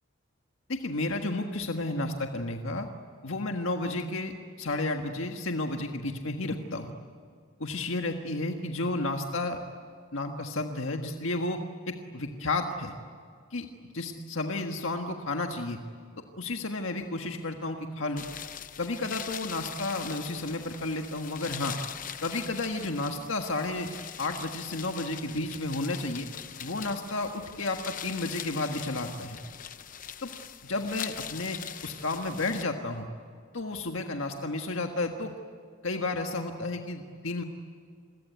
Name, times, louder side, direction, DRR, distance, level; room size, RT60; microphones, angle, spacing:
voice 1, 0.7-2.9 3.2-4.3 4.6-6.9 7.6-9.6 10.1-11.6 11.9-12.9 13.5-13.7 13.9-15.8 16.4-18.2 18.8-21.8 22.2-23.9 24.2-26.3 26.6-29.4 30.2-30.3 30.6-33.1 33.5-35.4 35.8-37.4, left 2 dB, 70° left, 4 dB, 1.6 m, -32 dB
sound 1, 18.2-32.6, left 9 dB, 40° left, 0.8 m, -42 dB
28.0 x 22.5 x 9.4 m, 2.1 s
head